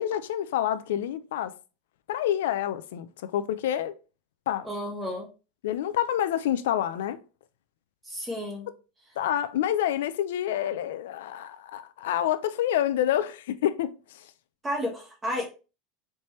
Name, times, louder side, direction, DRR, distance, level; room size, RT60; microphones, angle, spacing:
voice 1, 0.0-1.5 2.1-3.9 4.5-4.7 5.6-7.2 9.2-14.2, left 11 dB, 90° left, 0.3 m, -28 dB
voice 2, 4.6-5.3 8.0-8.7 14.6-15.5, left 1 dB, 15° right, 1.4 m, -32 dB
4.3 x 3.2 x 3.0 m
supercardioid pair, 150°, 0 cm